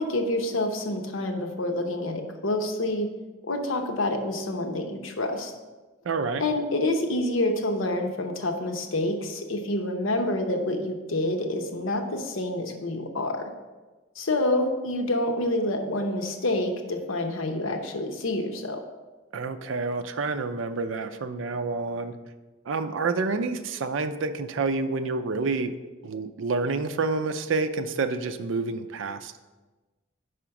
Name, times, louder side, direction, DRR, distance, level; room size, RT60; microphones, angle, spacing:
voice 1, 0.0-3.1 3.4-5.5 6.4-13.5 14.2-18.8, left 1 dB, 90° left, 4 dB, 0.8 m, -27 dB
voice 2, 6.0-6.4 19.3-22.1 22.7-25.7 26.0-29.4, right 3 dB, 75° right, 9 dB, 0.5 m, -28 dB
5.0 x 5.0 x 5.8 m, 1.2 s
head